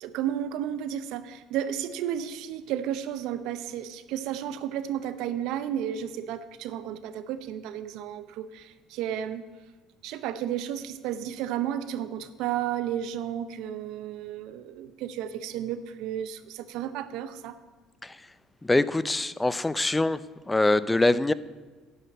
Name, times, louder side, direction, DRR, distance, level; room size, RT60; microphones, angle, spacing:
voice 1, 0.0-9.4 10.0-17.6, right 10 dB, 75° right, 12 dB, 0.7 m, -33 dB
voice 2, 18.6-20.2 20.5-21.3, left 2 dB, 10° left, 17 dB, 0.4 m, -23 dB
10.5 x 5.7 x 8.4 m, 1.3 s
supercardioid pair, 100°, 0 cm